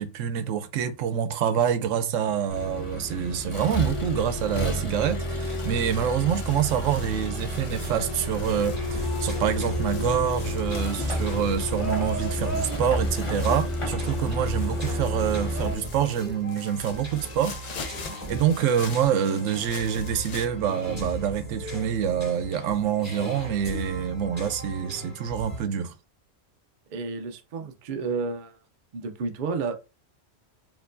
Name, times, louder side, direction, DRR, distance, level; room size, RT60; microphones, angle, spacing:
voice 1, 0.0-17.9 18.3-25.9, right 8 dB, 85° right, 1.0 m, -26 dB
Accelerating revving vroom, 2.5-15.7, left 1 dB, 30° left, 0.7 m, -30 dB
sound 1, 5.4-20.5, left 5 dB, 55° left, 0.5 m, -45 dB
sound 2, 8.4-25.6, right 1 dB, 10° right, 2.1 m, -38 dB
voice 2, 26.9-28.6 28.9-29.7, right 4 dB, 55° right, 0.5 m, -31 dB
4.4 x 2.9 x 2.5 m
omnidirectional pair, 1.3 m